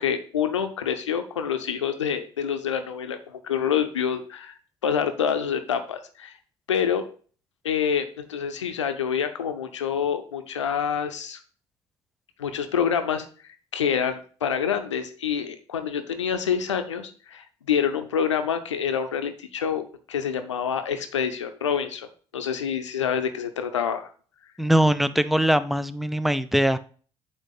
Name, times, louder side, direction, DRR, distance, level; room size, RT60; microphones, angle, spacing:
voice 1, 0.0-4.5 4.8-6.3 6.7-7.0 7.6-11.4 12.4-13.3 13.7-19.8 20.1-22.1 22.3-24.1, left 7 dB, 85° left, 9 dB, 0.7 m, -27 dB
voice 2, 24.6-26.8, right 1 dB, ahead, 14 dB, 0.5 m, -21 dB
8.2 x 2.8 x 5.7 m, 0.41 s
figure-of-eight pair, 50°, 15 cm